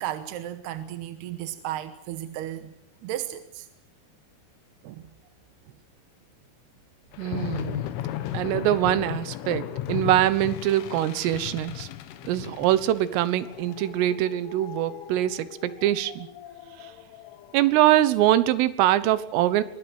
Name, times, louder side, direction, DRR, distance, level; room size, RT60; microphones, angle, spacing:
voice 1, 0.0-2.7 3.0-3.7 4.8-5.1, right 12 dB, 75° right, 2.6 m, -34 dB
sound 1, 7.1-17.7, left 12 dB, 75° left, 3.7 m, -36 dB
voice 2, 7.2-7.9 8.3-11.9 12.3-16.3 16.8-16.9 17.5-19.6, right 13 dB, 90° right, 3.8 m, -23 dB
24.0 x 21.0 x 8.0 m
omnidirectional pair, 5.7 m